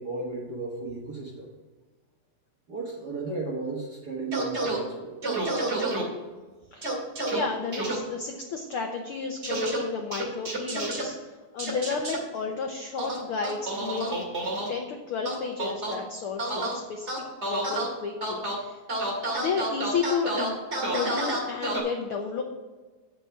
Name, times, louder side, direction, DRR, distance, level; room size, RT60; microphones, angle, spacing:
voice 1, 0.0-1.5 2.7-5.2, right 3 dB, 45° right, -2 dB, 1.6 m, -34 dB
sound 1, 4.3-4.8 5.2-6.0 6.8-7.4 7.7-8.0 9.4-9.8 10.1-11.0 11.6-12.2 13.0-14.7 15.3-15.9 16.4-16.7 17.1-17.9 18.2-18.6 18.9-21.8, right 2 dB, 25° right, 2.0 m, -29 dB
voice 2, 7.3-11.2 11.5-14.2 14.7-17.1 17.4-18.8 19.4-20.5 20.9-22.4, left 5 dB, 80° left, 3 dB, 1.2 m, -32 dB
9.2 x 6.9 x 5.8 m, 1.3 s
omnidirectional pair, 3.5 m